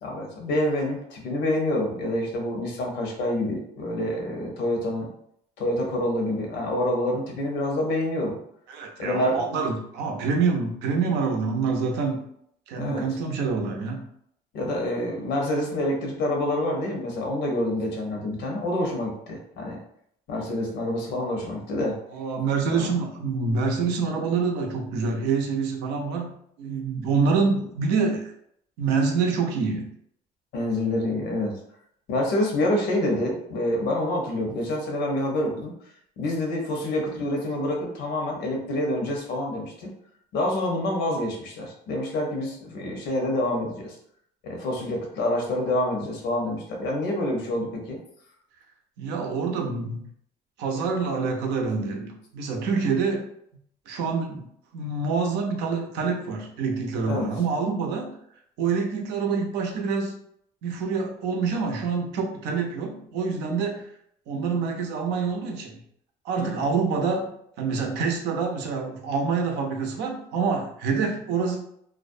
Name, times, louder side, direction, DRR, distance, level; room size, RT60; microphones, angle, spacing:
voice 1, 0.0-5.1 5.6-8.4 9.0-9.4 12.7-13.1 14.5-19.8 20.3-22.0 22.9-23.0 30.5-31.6 32.1-35.7 36.2-39.9 40.3-43.9 44.4-48.0 57.1-57.3 66.4-66.7, left 1 dB, 80° left, 1 dB, 0.8 m, -27 dB
voice 2, 8.7-12.3 12.7-14.1 22.1-28.3 28.8-29.9 49.0-50.1 50.6-53.3 53.9-54.5 54.7-58.2 58.6-60.2 60.6-63.9 64.3-65.8 66.2-67.3 67.6-71.6, right 5 dB, 90° right, 2 dB, 0.5 m, -26 dB
2.4 x 2.0 x 2.6 m, 0.70 s
cardioid pair, 110°, 17 cm